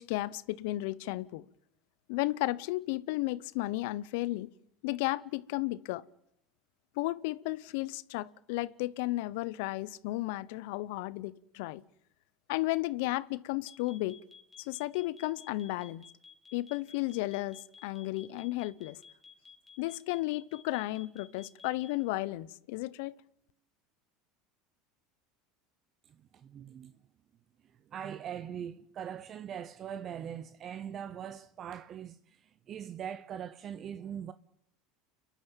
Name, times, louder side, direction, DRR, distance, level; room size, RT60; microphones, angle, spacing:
voice 1, 0.0-1.4 2.1-4.5 4.8-6.0 7.0-11.8 12.5-14.2 14.6-16.0 16.5-19.0 19.8-23.2, left 19 dB, 70° left, 0.8 m, -33 dB
sound 1, 13.7-22.0, left 6 dB, 20° left, 3.2 m, -54 dB
voice 2, 26.1-26.9 27.6-34.3, right 9 dB, 40° right, 0.7 m, -42 dB
30.0 x 11.5 x 9.0 m
hypercardioid pair, 85°, 0 cm